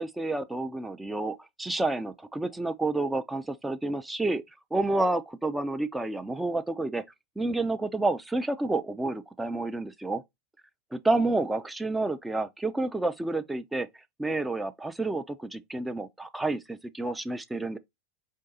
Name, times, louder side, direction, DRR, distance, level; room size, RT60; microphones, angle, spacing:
voice 1, 0.0-4.4 4.7-7.0 7.4-10.2 10.9-13.9 14.2-17.8, right 2 dB, 10° right, 0.5 m, -29 dB
4.7 x 2.5 x 3.8 m
figure-of-eight pair, 90°, 0 cm